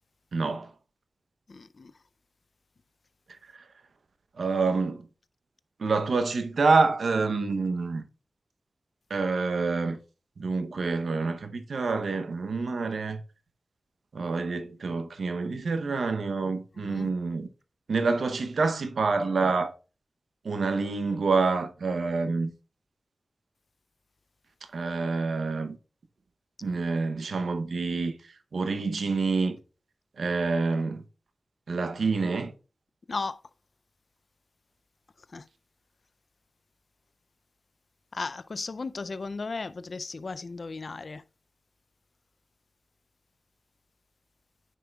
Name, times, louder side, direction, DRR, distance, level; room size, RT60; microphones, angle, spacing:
voice 1, 0.3-0.7 4.4-5.1 5.8-8.0 9.1-10.0 10.4-13.2 14.1-17.5 17.9-19.7 20.4-22.5 24.7-25.8 26.6-28.1 28.5-29.6 30.2-31.0 31.7-32.5, right 4 dB, 85° right, 0.7 m, -27 dB
voice 2, 1.5-1.9 16.8-17.1 33.1-33.4 35.3-35.5 38.1-41.2, left 4 dB, 65° left, 0.4 m, -35 dB
9.4 x 5.6 x 2.3 m
cardioid pair, 50°, 0 cm